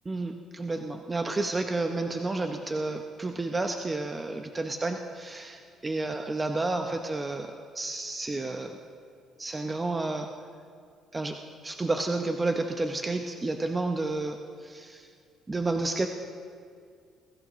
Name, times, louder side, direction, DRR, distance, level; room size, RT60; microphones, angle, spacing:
voice 1, 0.0-8.7 9.4-10.3 11.1-11.4 11.6-15.1 15.5-16.1, right 2 dB, 20° right, 4 dB, 0.8 m, -31 dB
22.5 x 14.0 x 3.1 m, 2.2 s
cardioid pair, 90°, 0 cm